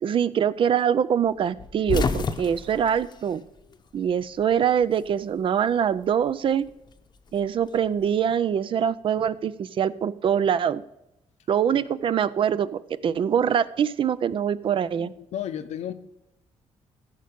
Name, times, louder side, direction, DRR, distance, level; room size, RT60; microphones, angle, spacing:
voice 1, 0.0-3.4 3.9-6.6 7.3-10.8 11.5-15.1, right 8 dB, 50° right, 16 dB, 0.4 m, -24 dB
sound 1, 1.6-4.1 4.4-5.5 6.7-8.1, left 5 dB, 40° left, 0.7 m, -31 dB
voice 2, 15.0-15.9, left 10 dB, 80° left, 11 dB, 0.7 m, -34 dB
14.5 x 5.2 x 5.2 m, 0.86 s
cardioid pair, 120°, 11 cm